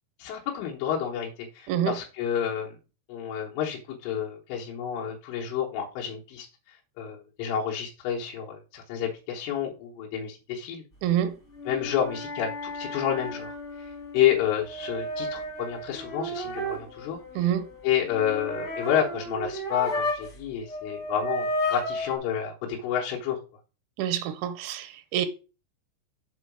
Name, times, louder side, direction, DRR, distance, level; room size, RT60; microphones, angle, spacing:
voice 1, 0.2-2.8 3.1-10.8 11.7-13.5 14.1-17.5 17.8-23.4, left 9 dB, 85° left, 3.7 m, -30 dB
voice 2, 1.7-2.0 11.0-11.4 17.4-17.7 24.0-25.3, right 11 dB, 80° right, 2.9 m, -27 dB
sound 1, 11.5-20.4 20.7-22.2, left 1 dB, 55° left, 0.8 m, -33 dB
7.4 x 3.9 x 6.0 m
omnidirectional pair, 5.5 m